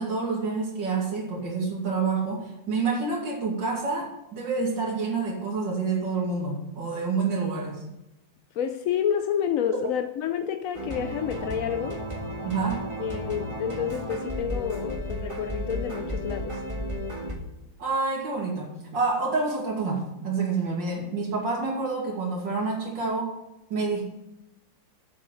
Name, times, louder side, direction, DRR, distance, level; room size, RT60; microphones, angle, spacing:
voice 1, 0.0-7.8 12.4-12.8 17.8-23.3 23.7-24.0, right 4 dB, 75° right, 3.2 m, -28 dB
voice 2, 8.5-12.0 13.0-16.6, left 9 dB, 65° left, 0.8 m, -29 dB
sound 1, 10.7-17.4, equal, 15° right, 1.6 m, -33 dB
7.4 x 7.4 x 7.6 m
omnidirectional pair, 2.0 m